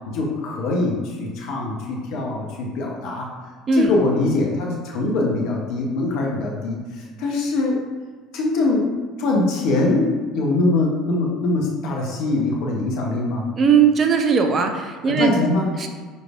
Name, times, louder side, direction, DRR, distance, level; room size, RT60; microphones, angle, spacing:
voice 1, 0.1-3.3 3.7-7.8 8.3-8.9 9.2-13.4 15.1-15.7, left 2 dB, 60° left, 0 dB, 0.7 m, -23 dB
voice 2, 13.6-15.3 15.8-15.9, right 6 dB, 35° right, 5 dB, 0.6 m, -18 dB
4.6 x 4.0 x 2.3 m, 1.5 s
hypercardioid pair, 65°, 0 cm